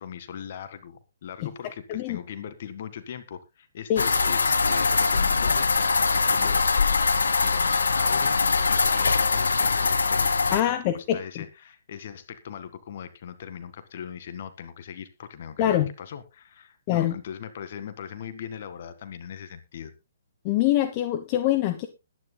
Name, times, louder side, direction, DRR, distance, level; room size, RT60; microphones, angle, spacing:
voice 1, 0.0-6.6 7.3-8.4 8.7-19.9, left 8 dB, 50° left, 11 dB, 1.8 m, -40 dB
sound 1, 4.0-10.6, left 4 dB, 75° left, 1.3 m, -22 dB
voice 2, 10.5-11.4 15.6-15.9 16.9-17.1 20.4-21.9, left 12 dB, 35° left, 9 dB, 1.1 m, -24 dB
21.0 x 10.0 x 2.2 m, 0.26 s
figure-of-eight pair, 130°, 0 cm